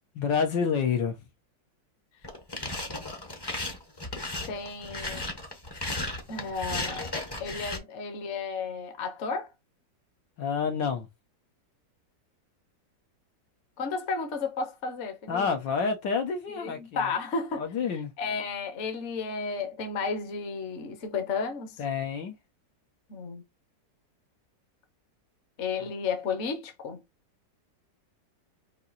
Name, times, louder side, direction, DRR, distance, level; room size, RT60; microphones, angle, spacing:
voice 1, 0.1-1.2 10.4-11.1 15.3-17.1 17.6-18.1 21.8-22.3, left 6 dB, 75° left, 1.7 m, -28 dB
sound 1, 2.2-7.8, left 2 dB, 20° left, 0.7 m, -35 dB
voice 2, 4.5-5.3 6.3-7.1 7.4-9.5 13.8-15.5 16.6-17.7 18.2-21.8 23.1-23.4 25.6-27.0, left 4 dB, 45° left, 1.1 m, -33 dB
4.7 x 2.7 x 4.0 m
omnidirectional pair, 2.0 m